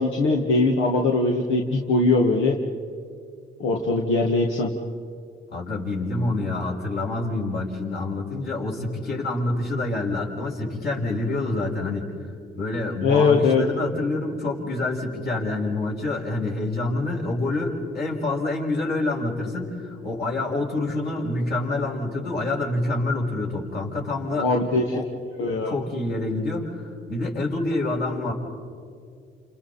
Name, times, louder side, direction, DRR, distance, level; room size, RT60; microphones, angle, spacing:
voice 1, 0.0-2.6 3.6-4.7 13.0-13.6 24.4-25.0 25.4-25.7, left 3 dB, 80° left, 0 dB, 1.8 m, -21 dB
voice 2, 5.5-12.1 12.6-24.5 24.9-25.1 25.6-28.3, left 2 dB, 55° left, -2 dB, 6.0 m, -27 dB
30.0 x 28.5 x 4.3 m, 2.3 s
cardioid pair, 90°, 20 cm